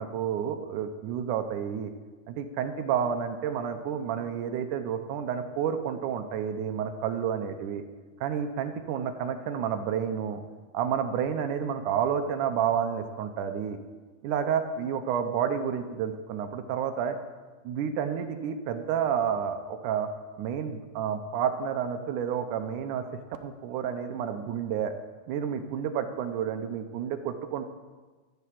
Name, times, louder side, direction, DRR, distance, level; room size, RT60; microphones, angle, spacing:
voice 1, 0.0-1.9 2.3-7.8 8.2-10.4 10.7-13.8 14.2-17.2 17.6-20.1 20.4-23.1 23.3-24.9 25.3-27.6, right 8 dB, 85° right, 6 dB, 2.4 m, -30 dB
14.0 x 6.8 x 7.6 m, 1.3 s
omnidirectional pair, 3.5 m